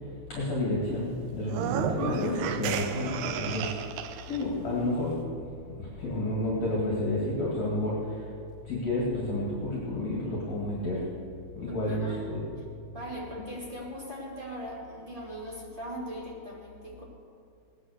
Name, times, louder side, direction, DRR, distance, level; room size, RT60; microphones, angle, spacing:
voice 1, 0.3-3.7 4.3-5.2 5.7-8.3 8.6-11.1 11.6-12.5, left 1 dB, 45° left, -4 dB, 2.9 m, -30 dB
sound 1, 1.4-4.4, right 8 dB, 80° right, 2.8 m, -33 dB
voice 2, 11.7-12.3 12.9-17.0, equal, 20° right, -4 dB, 1.6 m, -40 dB
19.0 x 9.7 x 6.5 m, 2.4 s
omnidirectional pair, 4.8 m